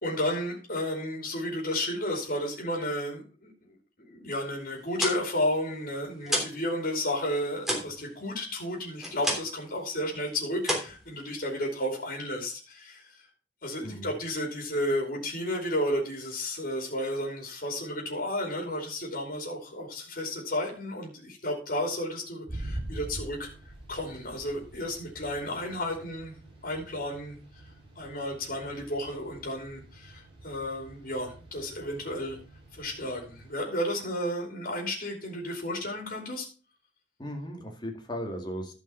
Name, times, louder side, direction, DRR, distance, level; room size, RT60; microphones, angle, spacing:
voice 1, 0.0-13.2 13.6-23.5 23.9-26.3 26.6-27.4 28.0-32.4 32.7-36.5, left 1 dB, 55° left, 0 dB, 3.0 m, -32 dB
sound 1, 4.7-6.7 6.9-9.7 10.0-10.3 10.6-11.7, equal, ahead, 3.3 m, -32 dB
voice 2, 13.8-14.1 37.2-38.7, equal, 25° left, 2 dB, 2.2 m, -36 dB
sound 2, 22.5-33.6, right 1 dB, 30° right, 4.0 m, -45 dB
12.0 x 5.4 x 5.7 m, 0.36 s
head